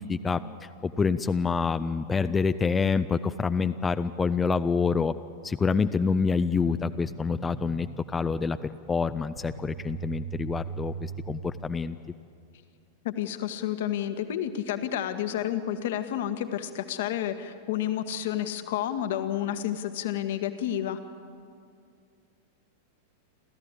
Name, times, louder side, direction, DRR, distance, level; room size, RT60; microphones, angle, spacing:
voice 1, 0.0-5.1 5.4-12.0, left 5 dB, 15° left, 11 dB, 0.6 m, -27 dB
sound 1, 6.5-12.1, right 7 dB, 75° right, 3.5 m, -41 dB
voice 2, 13.0-21.0, left 11 dB, 55° left, 9 dB, 1.4 m, -30 dB
29.5 x 14.0 x 8.9 m, 2.3 s
figure-of-eight pair, 90°, 0 cm